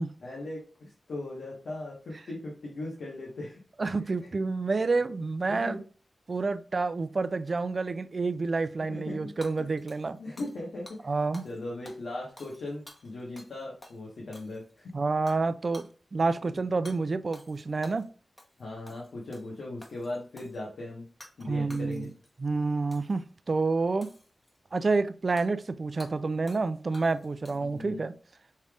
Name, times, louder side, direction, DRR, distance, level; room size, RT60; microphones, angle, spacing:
voice 1, 0.2-3.6 5.5-5.8 8.7-9.3 9.6-9.7 10.2-11.1 11.4-14.9 16.4-16.6 18.6-21.0 21.4-22.1 27.6-28.0, left 2 dB, 90° left, 1.2 m, -39 dB
voice 2, 3.8-5.8 6.3-10.2 11.0-11.5 14.9-18.1 21.5-22.1 22.4-24.1 24.7-28.1, right 3 dB, 50° right, 0.4 m, -29 dB
Hammer / Shatter, 9.4-10.6 10.9-11.0 11.3-11.6 11.8-13.5 13.8-14.0 14.3-14.8 15.3-15.4 15.7-15.9 16.8-17.0 17.3-18.1 18.4-18.6 18.9-19.5 19.8-20.6 21.2-21.4 21.7-22.3 22.9-23.2 24.0-24.6 25.4-25.5 26.0-26.1 26.5-26.7 26.9-27.8, left 1 dB, 30° left, 1.0 m, -51 dB
5.4 x 3.4 x 2.4 m
wide cardioid pair, 70°, 0 cm